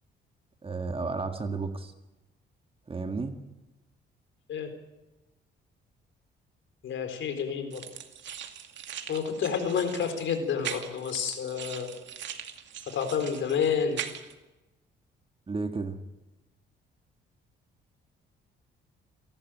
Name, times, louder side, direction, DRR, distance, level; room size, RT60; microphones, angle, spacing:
voice 1, 0.6-1.9 2.9-3.4 15.5-16.0, right 4 dB, 30° right, 7 dB, 1.9 m, -32 dB
voice 2, 6.8-7.8 9.1-11.9 12.9-14.0, left 7 dB, 70° left, 8 dB, 4.2 m, -29 dB
sound 1, 7.7-14.3, right 9 dB, 65° right, 2.3 m, -41 dB
28.5 x 12.0 x 9.2 m, 1.0 s
cardioid pair, 90°, 20 cm